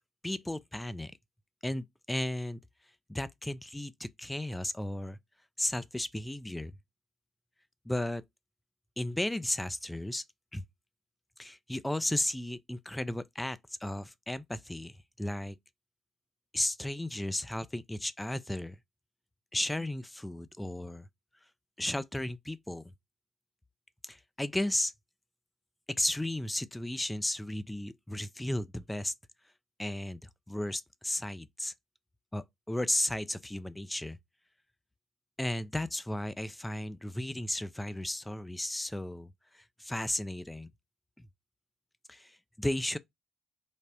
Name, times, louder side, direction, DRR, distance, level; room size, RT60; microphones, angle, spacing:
voice 1, 0.2-1.1 1.6-2.6 3.1-5.2 5.6-6.7 7.9-8.2 9.0-10.2 10.5-10.6 11.4-15.6 16.5-18.8 19.5-21.1 21.8-22.8 24.0-24.9 25.9-29.1 29.8-30.2 30.5-31.7 32.3-34.2 35.4-40.7 41.2-41.3 42.1-43.0, left 1 dB, 10° left, 0.3 m, -34 dB
3.3 x 2.0 x 2.6 m
hypercardioid pair, 45°, 0 cm